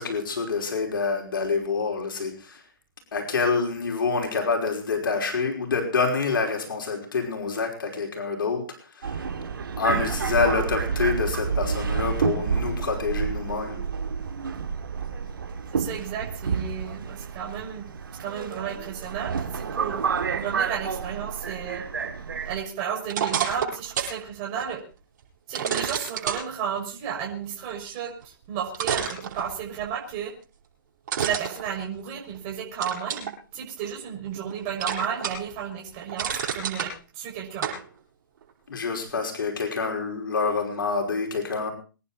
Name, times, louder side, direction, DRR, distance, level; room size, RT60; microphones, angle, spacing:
voice 1, 0.0-2.6 3.1-8.7 8.9-9.2 9.8-13.8 38.7-41.7, left 4 dB, 70° left, 3 dB, 5.5 m, -27 dB
Subway metro underground, 9.0-22.6, right 6 dB, 75° right, 2.9 m, -29 dB
voice 2, 15.7-17.9 18.2-21.8 22.4-24.8 25.5-30.3 31.2-37.7, right 8 dB, 35° right, 0 dB, 6.0 m, -33 dB
sound 1, 23.1-24.2 24.6-24.7 25.5-26.4 28.2-28.3 28.7-29.8 31.1-32.4 32.8-33.3 33.8-34.5 34.8-35.5 35.9-36.9 37.6-37.8, right 7 dB, 55° right, 7.9 m, -29 dB
25.0 x 11.0 x 4.3 m, 0.35 s
hypercardioid pair, 135°, 11 cm